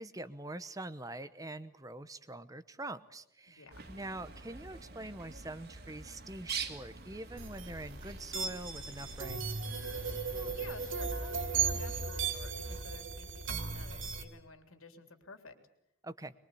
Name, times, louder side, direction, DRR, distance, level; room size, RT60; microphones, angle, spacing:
voice 1, 0.0-9.5 16.0-16.3, right 2 dB, 15° right, 13 dB, 0.9 m, -44 dB
voice 2, 3.5-3.9 10.3-15.5, left 3 dB, 90° left, 6 dB, 3.6 m, -52 dB
Bird, 3.7-12.0, right 5 dB, 50° right, 2.4 m, -46 dB
sound 1, 7.4-14.2, right 5 dB, 70° right, 3.2 m, -36 dB
24.0 x 22.5 x 8.5 m, 0.77 s
head